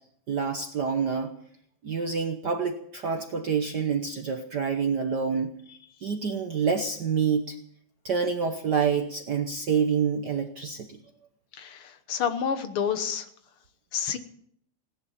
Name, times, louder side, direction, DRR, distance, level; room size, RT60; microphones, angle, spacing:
voice 1, 0.3-1.3 1.8-5.6 6.0-7.5 8.0-10.9, right 6 dB, 65° right, 4 dB, 1.0 m, -27 dB
voice 2, 11.6-13.3 13.9-14.2, left 7 dB, 60° left, 9 dB, 1.8 m, -29 dB
17.5 x 11.0 x 7.2 m, 0.66 s
omnidirectional pair, 3.3 m